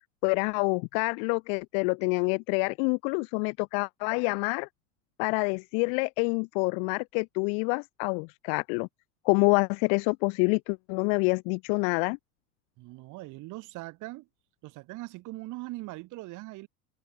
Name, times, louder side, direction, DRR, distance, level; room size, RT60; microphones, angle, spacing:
voice 1, 0.2-4.7 5.2-8.9 9.2-12.2, left 40 dB or more, 15° left, 0.3 m, -27 dB
voice 2, 12.8-14.3 14.6-16.7, right 21 dB, 40° right, 6.8 m, -41 dB
figure-of-eight pair, 90°, 46 cm